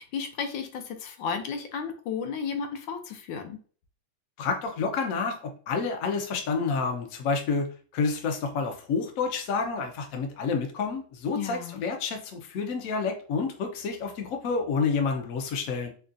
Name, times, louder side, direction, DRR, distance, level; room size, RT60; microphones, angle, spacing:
voice 1, 0.0-3.6 11.3-11.8, left 6 dB, 80° left, 6 dB, 1.4 m, -33 dB
voice 2, 4.4-5.4 5.7-15.9, left 4 dB, 60° left, 4 dB, 0.9 m, -29 dB
5.2 x 2.3 x 2.5 m, 0.41 s
omnidirectional pair, 2.1 m